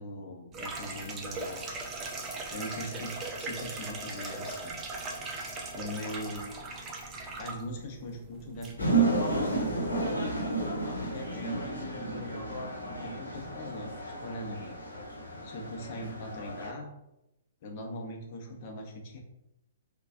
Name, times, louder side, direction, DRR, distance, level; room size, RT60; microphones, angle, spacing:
voice 1, 0.0-1.7 2.5-4.8 5.7-6.5 7.4-9.9 11.0-13.9 14.2-14.6 15.4-16.9 17.6-19.2, left 1 dB, 40° left, 0 dB, 0.7 m, -41 dB
sound 1, 0.5-9.7, right 3 dB, 20° right, 0.4 m, -39 dB
sound 2, 8.8-16.7, right 3 dB, 85° left, 1.0 m, -32 dB
3.9 x 2.2 x 2.4 m, 0.88 s
figure-of-eight pair, 120°, 0 cm